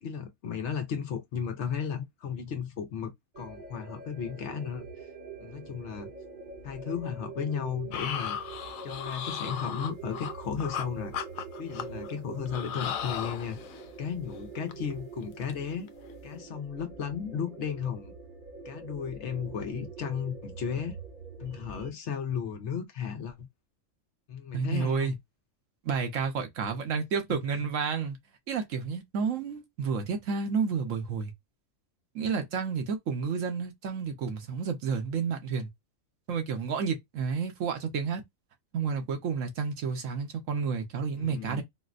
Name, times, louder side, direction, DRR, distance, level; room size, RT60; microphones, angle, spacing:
voice 1, 0.0-4.8 5.4-6.1 6.6-8.4 8.8-11.1 11.6-13.6 14.0-15.9 16.2-18.1 18.6-21.0 21.4-23.5 24.3-25.2 41.2-41.6, left 7 dB, 65° left, 0.9 m, -34 dB
sound 1, 3.3-21.9, right 5 dB, 40° right, 0.8 m, -44 dB
sound 2, 7.9-10.9 11.1-12.1 12.5-13.9 14.3-14.4 14.7-14.9 15.2-15.5 15.9-16.1, left 8 dB, 85° left, 1.0 m, -36 dB
voice 2, 24.5-25.1 25.8-28.2 28.5-31.3 32.1-35.7 36.3-38.2 38.7-41.6, right 5 dB, 75° right, 1.2 m, -30 dB
4.1 x 2.1 x 2.5 m
omnidirectional pair, 1.4 m